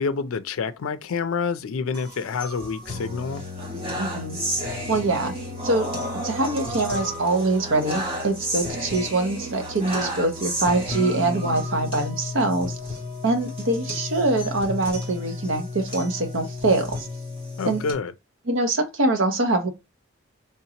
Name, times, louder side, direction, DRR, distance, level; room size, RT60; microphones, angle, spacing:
voice 1, 0.0-3.4 17.6-18.1, left 5 dB, 85° left, 0.4 m, -28 dB
sound 1, 1.9-17.9, left 1 dB, 25° right, 1.5 m, -32 dB
voice 2, 4.0-4.4 4.9-5.3 5.6-5.9 6.2-12.8 13.2-17.1 17.7-17.8 18.5-19.7, right 2 dB, 65° right, 0.9 m, -24 dB
3.6 x 2.8 x 2.8 m
head